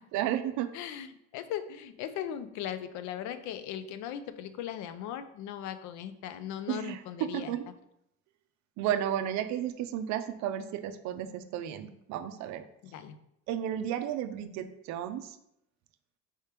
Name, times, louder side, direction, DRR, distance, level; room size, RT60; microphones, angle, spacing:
voice 1, 0.1-0.7 6.7-7.7 8.8-12.6 13.5-15.4, right 10 dB, 65° right, 10 dB, 0.4 m, -33 dB
voice 2, 0.7-1.1 1.3-7.5 12.8-13.2, left 10 dB, 65° left, 12 dB, 0.4 m, -38 dB
4.7 x 2.9 x 3.3 m, 0.79 s
cardioid pair, 130°, 31 cm